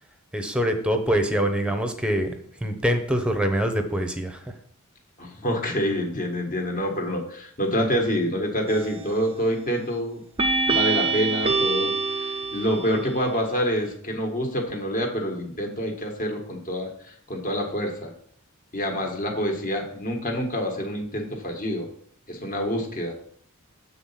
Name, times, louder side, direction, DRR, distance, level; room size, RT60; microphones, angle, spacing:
voice 1, 0.3-4.5, equal, 5° right, 6 dB, 0.8 m, -24 dB
voice 2, 5.2-10.2 10.7-18.1 18.7-21.9 22.3-23.1, equal, 40° left, 2 dB, 1.4 m, -27 dB
sound 1, 8.7-9.2 10.4-13.1, right 3 dB, 25° right, 0.5 m, -25 dB
7.9 x 4.0 x 5.6 m, 0.63 s
head